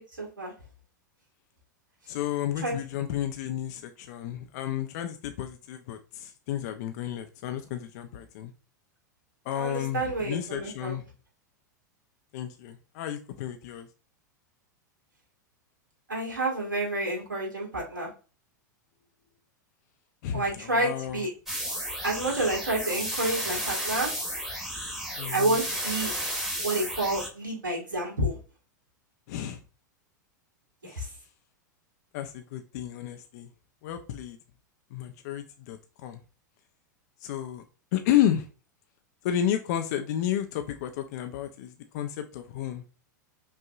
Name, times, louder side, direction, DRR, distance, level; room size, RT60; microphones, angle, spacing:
voice 1, 0.2-0.5 2.6-2.8 9.6-11.0 16.1-18.1 20.3-21.3 22.0-24.1 25.3-26.1 26.6-28.4 30.8-31.1, right 2 dB, 90° right, -2 dB, 1.6 m, -29 dB
voice 2, 2.1-8.5 9.4-11.0 12.3-13.9 20.2-21.3 25.2-25.6 29.3-29.6 30.8-31.2 32.1-33.5 33.8-34.4 34.9-36.2 37.2-37.6 37.9-38.5 39.2-42.8, left 11 dB, 55° left, 6 dB, 0.6 m, -31 dB
sound 1, 21.5-27.3, equal, 5° right, 1.3 m, -33 dB
5.5 x 2.8 x 2.4 m, 0.34 s
hypercardioid pair, 95°, 10 cm